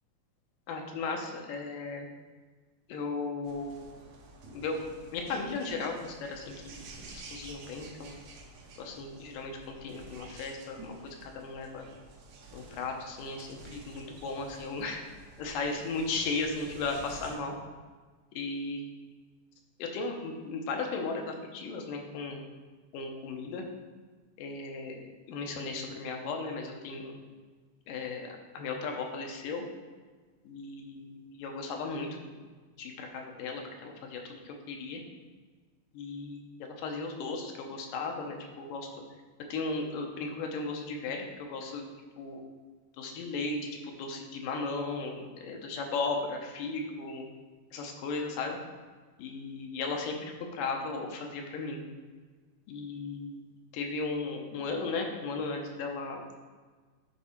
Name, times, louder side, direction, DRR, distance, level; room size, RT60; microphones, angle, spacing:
voice 1, 0.7-2.1 2.9-4.0 4.5-4.8 5.1-8.1 8.8-9.5 9.8-11.8 12.5-15.0 15.4-17.5 18.3-18.8 19.8-22.4 22.9-23.6 24.4-27.1 27.9-29.7 30.4-32.1 32.8-35.0 35.9-38.9 39.5-41.8 42.2-42.4 43.0-43.7 44.0-47.3 47.7-48.6 49.2-51.8 52.7-53.5 53.7-56.4, left 3 dB, 85° left, 2 dB, 2.5 m, -36 dB
sound 1, 3.4-17.4, right 2 dB, 75° right, 2.2 m, -50 dB
9.9 x 3.6 x 4.4 m, 1.4 s
omnidirectional pair, 3.8 m